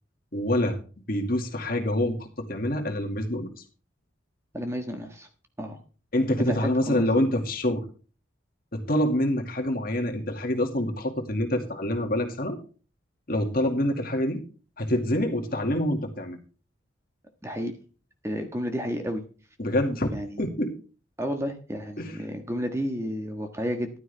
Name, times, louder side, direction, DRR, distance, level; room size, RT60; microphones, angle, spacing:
voice 1, 0.3-0.8 1.1-3.5 6.1-7.8 8.7-12.6 13.3-14.4 14.8-16.4 19.6-20.7 22.0-22.2, left 1 dB, 45° left, 4 dB, 2.2 m, -26 dB
voice 2, 4.5-5.3 5.6-5.8 6.4-7.2 17.4-17.7 18.2-19.2 20.1-20.4 21.2-23.9, equal, 15° right, 5 dB, 1.5 m, -31 dB
14.0 x 12.0 x 3.5 m, 0.37 s
head